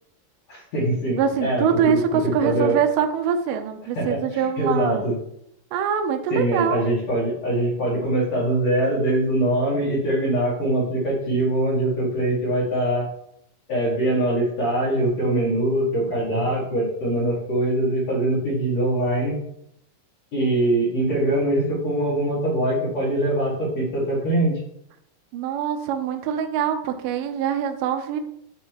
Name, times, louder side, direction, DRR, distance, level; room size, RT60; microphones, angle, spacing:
voice 1, 0.5-2.8 4.0-5.2 6.3-13.0 13.7-19.4 20.3-24.6, right 1 dB, 50° left, -7 dB, 2.6 m, -23 dB
voice 2, 1.2-5.1 5.7-6.9 25.3-28.2, right 8 dB, 75° right, 6 dB, 2.2 m, -24 dB
9.8 x 3.3 x 4.6 m, 0.74 s
omnidirectional pair, 4.2 m